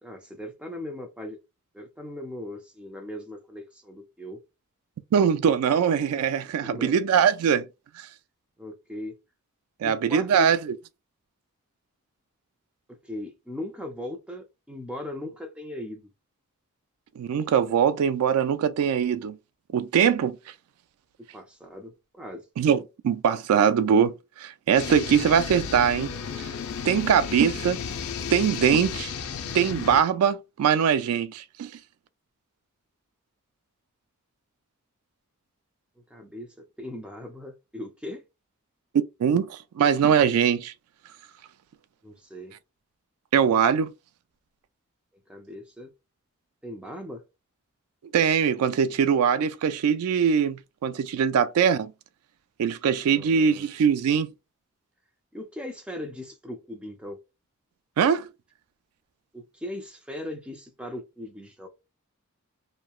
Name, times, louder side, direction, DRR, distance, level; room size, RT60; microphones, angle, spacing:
voice 1, 0.0-1.4 1.7-4.4 6.6-7.0 8.6-9.2 9.8-10.6 12.9-16.1 21.3-22.4 36.1-38.2 42.0-42.6 45.3-45.9 46.6-47.2 53.1-53.7 55.3-57.2 59.3-61.7, left 1 dB, 5° right, 0.5 m, -38 dB
voice 2, 5.1-7.7 8.0-8.1 9.8-10.6 17.2-19.4 19.7-20.4 22.6-26.1 26.9-27.8 28.3-29.1 29.5-31.7 39.2-40.7 43.3-43.9 48.1-51.9 52.6-54.3 58.0-58.3, right 7 dB, 85° right, 0.3 m, -22 dB
sound 1, 24.7-30.0, left 6 dB, 80° left, 0.4 m, -33 dB
2.9 x 2.2 x 2.3 m
head